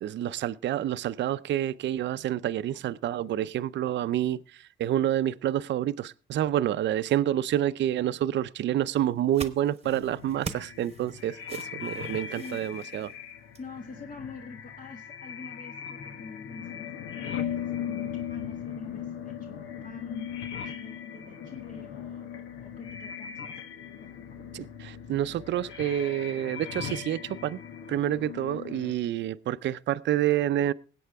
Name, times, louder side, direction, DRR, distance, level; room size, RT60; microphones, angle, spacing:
voice 1, 0.0-13.1 24.5-27.6 27.9-30.7, right 12 dB, 65° right, 0.5 m, -28 dB
sound 1, 9.0-13.7, right 5 dB, 30° right, 1.0 m, -43 dB
sound 2, 9.8-28.9, left 8 dB, 90° left, 1.4 m, -39 dB
voice 2, 13.6-23.6 24.0-24.5, left 4 dB, 40° left, 1.5 m, -46 dB
20.5 x 8.5 x 3.5 m
cardioid pair, 90°, 20 cm